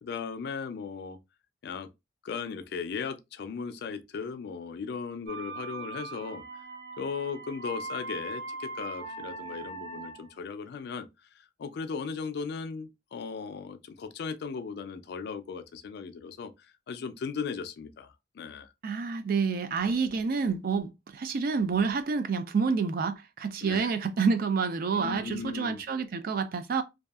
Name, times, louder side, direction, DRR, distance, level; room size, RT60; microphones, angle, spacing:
voice 1, 0.0-1.2 1.6-1.9 2.2-6.4 7.0-11.1 11.6-16.5 16.9-18.7 23.6-23.9 24.9-25.8, left 5 dB, 60° left, 0.3 m, -37 dB
sound 1, 5.3-10.4, right 3 dB, 75° right, 1.5 m, -40 dB
voice 2, 18.8-26.8, right 5 dB, 50° right, 0.4 m, -28 dB
2.6 x 2.3 x 2.3 m
head